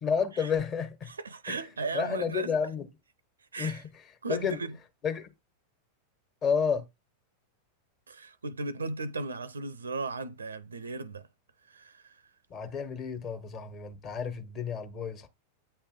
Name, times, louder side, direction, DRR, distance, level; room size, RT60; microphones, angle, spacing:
voice 1, 0.0-1.1 1.5-1.6 1.9-2.9 3.6-3.8 4.3-4.6 5.0-5.3 6.4-6.8 12.5-15.3, left 6 dB, 30° left, 1.4 m, -30 dB
voice 2, 1.1-2.5 3.5-3.8 4.2-4.8 8.1-11.3 11.7-12.2, right 3 dB, 75° right, 0.5 m, -36 dB
8.7 x 3.3 x 4.9 m
figure-of-eight pair, 90°, 0 cm